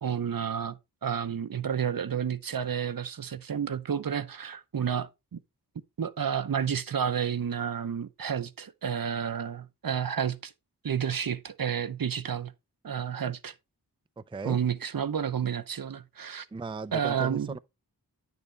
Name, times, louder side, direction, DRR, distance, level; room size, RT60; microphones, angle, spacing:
voice 1, 0.0-5.4 6.0-10.5 10.8-12.5 12.8-13.5 14.4-16.5 16.9-17.6, right 8 dB, 60° right, 0.7 m, -31 dB
voice 2, 14.2-14.6 16.5-17.6, right 3 dB, 15° right, 0.4 m, -36 dB
10.0 x 6.7 x 3.3 m
wide cardioid pair, 75°, 38 cm